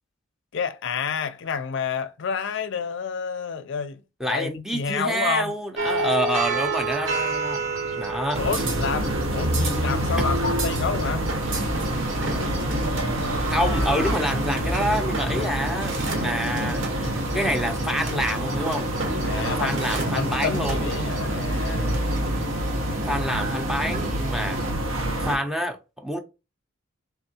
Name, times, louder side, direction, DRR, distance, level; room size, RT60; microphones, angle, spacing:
voice 1, 0.5-4.0 4.3-5.5 8.4-11.3 19.3-19.8 20.1-22.0, left 6 dB, 60° left, 0.4 m, -29 dB
voice 2, 4.2-7.6 8.0-8.4 13.5-15.9 16.2-18.9 19.4-20.9 23.1-24.6 25.2-26.2, equal, ahead, 0.5 m, -27 dB
sound 1, 5.8-22.4, right 3 dB, 65° right, 1.1 m, -31 dB
sound 2, 8.3-25.4, right 1 dB, 80° right, 0.9 m, -27 dB
sound 3, 11.4-24.7, right 2 dB, 40° right, 0.7 m, -40 dB
3.5 x 3.4 x 2.7 m
head